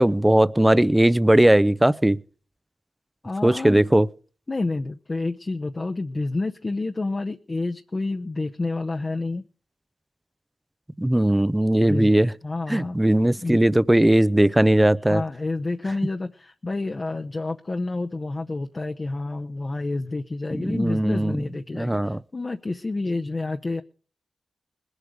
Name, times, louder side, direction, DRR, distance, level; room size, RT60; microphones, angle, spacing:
voice 1, 0.0-2.2 3.4-4.1 11.0-12.3 12.7-15.2 20.6-21.4 21.7-22.2, right 1 dB, 15° right, 0.6 m, -18 dB
voice 2, 3.2-3.8 4.5-9.4 11.8-12.1 12.4-13.0 13.4-13.6 15.1-23.8, left 2 dB, 45° left, 0.8 m, -29 dB
20.5 x 8.1 x 4.9 m
cardioid pair, 40°, 0 cm